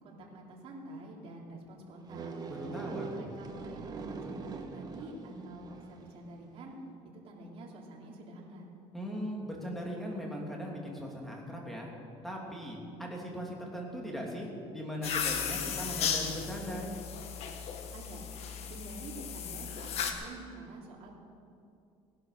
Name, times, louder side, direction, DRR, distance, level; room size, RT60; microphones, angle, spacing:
voice 1, 0.0-2.4 2.8-6.7 7.2-8.7 17.9-18.2 18.7-21.2, right 2 dB, 50° right, -2 dB, 3.3 m, -47 dB
sound 1, 2.1-6.1, right 4 dB, 35° right, 1.4 m, -42 dB
voice 2, 2.5-3.3 8.9-11.9 12.2-16.9, equal, ahead, -2 dB, 3.0 m, -39 dB
sound 2, 15.0-20.1, left 7 dB, 60° left, 1.6 m, -35 dB
17.5 x 11.0 x 6.7 m, 2.5 s
cardioid pair, 135°, 12 cm